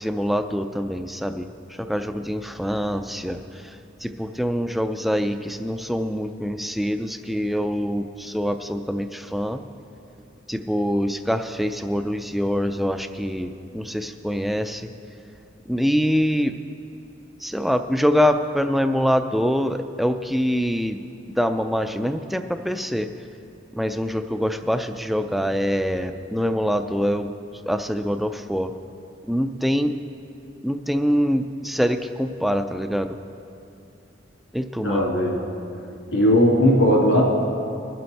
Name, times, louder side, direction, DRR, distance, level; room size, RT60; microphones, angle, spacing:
voice 1, 0.0-9.6 10.5-14.9 15.7-16.5 17.4-21.0 21.4-23.1 23.7-27.3 27.7-28.7 29.3-29.9 30.6-33.2 34.5-35.1, equal, ahead, 8 dB, 0.3 m, -24 dB
voice 2, 34.8-35.4 36.1-37.2, equal, 75° left, -3 dB, 2.7 m, -18 dB
20.5 x 7.7 x 4.2 m, 2.6 s
head